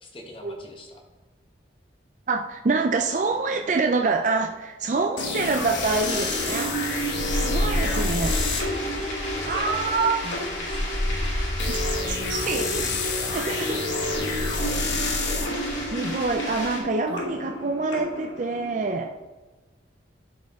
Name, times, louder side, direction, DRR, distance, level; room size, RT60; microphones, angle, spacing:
voice 1, 0.0-1.0 7.2-8.0 9.3-10.9 14.4-15.0, left 1 dB, 30° left, 1 dB, 1.1 m, -42 dB
voice 2, 2.3-6.8 7.3-8.4 9.4-10.2 11.7-13.0 13.3-13.8 15.9-19.1, right 4 dB, 40° right, 4 dB, 0.4 m, -26 dB
sound 1, 5.2-18.9, left 2 dB, 70° left, 1.2 m, -30 dB
sound 2, 5.4-16.8, left 1 dB, 85° left, 2.5 m, -30 dB
11.5 x 4.4 x 3.6 m, 1.2 s
head